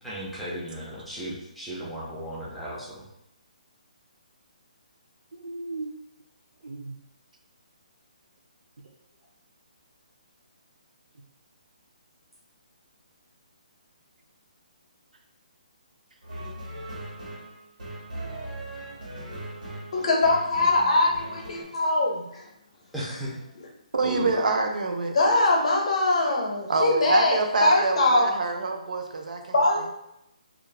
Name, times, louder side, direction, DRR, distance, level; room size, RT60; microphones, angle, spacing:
voice 1, 0.0-3.0 21.4-21.6 22.9-23.4 24.0-24.4, right 1 dB, ahead, -9 dB, 0.3 m, -35 dB
voice 2, 5.3-5.9 6.6-6.9 23.9-25.2 26.7-29.9, right 3 dB, 70° right, 4 dB, 0.5 m, -27 dB
sound 1, 16.2-21.6, right 1 dB, 90° right, 1.0 m, -39 dB
voice 3, 19.9-22.4 25.1-28.3 29.5-29.9, left 2 dB, 50° left, -1 dB, 0.6 m, -22 dB
2.4 x 2.0 x 3.1 m, 0.81 s
hypercardioid pair, 175°, 4 cm